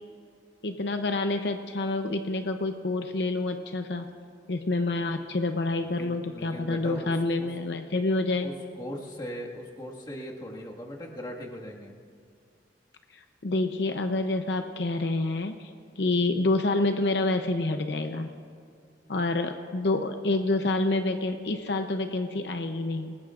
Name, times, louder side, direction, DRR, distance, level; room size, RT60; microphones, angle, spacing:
voice 1, 0.6-4.1 4.5-8.5 13.1-15.7 16.0-18.3 19.1-23.2, left 2 dB, 75° left, 6 dB, 0.7 m, -28 dB
voice 2, 5.8-7.5 8.4-12.0, equal, 25° left, -2 dB, 1.9 m, -39 dB
27.5 x 19.0 x 2.5 m, 2.2 s
head